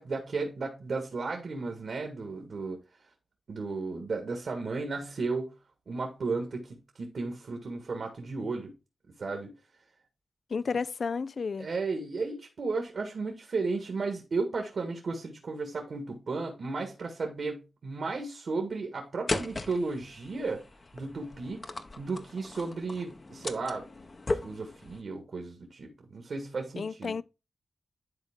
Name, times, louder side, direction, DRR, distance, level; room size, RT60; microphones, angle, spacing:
voice 1, 0.0-2.8 3.5-5.5 5.9-8.7 9.2-9.5 11.6-20.6 20.9-21.6 22.0-23.9 24.4-27.2, right 3 dB, 70° right, 1.7 m, -34 dB
voice 2, 10.5-11.7 26.8-27.2, left 5 dB, 65° left, 0.3 m, -32 dB
sound 1, 19.3-25.0, left 2 dB, 45° left, 0.9 m, -37 dB
10.5 x 3.9 x 3.7 m
cardioid pair, 50°, 0 cm